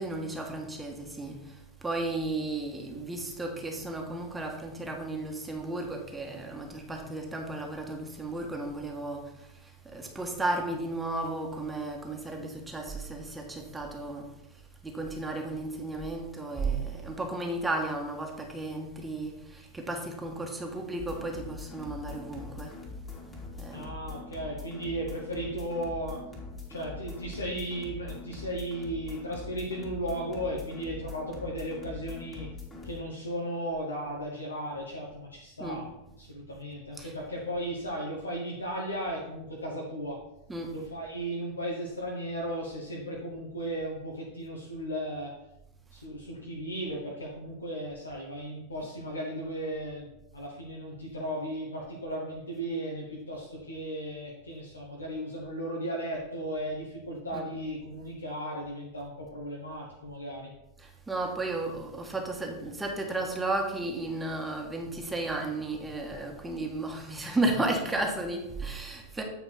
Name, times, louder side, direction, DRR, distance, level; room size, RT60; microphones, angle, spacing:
voice 1, 0.0-14.3 14.8-22.8 23.6-23.9 35.6-35.8 36.9-37.1 40.5-40.8 57.3-57.4 60.8-69.2, right 2 dB, 10° right, 2 dB, 1.4 m, -34 dB
sound 1, 21.0-32.9, left 3 dB, 15° left, 2.1 m, -43 dB
voice 2, 23.7-26.2 26.7-32.5 32.8-35.9 36.2-40.2 40.7-45.3 45.9-60.5, right 1 dB, 80° left, -3 dB, 1.1 m, -36 dB
8.3 x 4.6 x 4.4 m, 0.87 s
figure-of-eight pair, 85°, 0 cm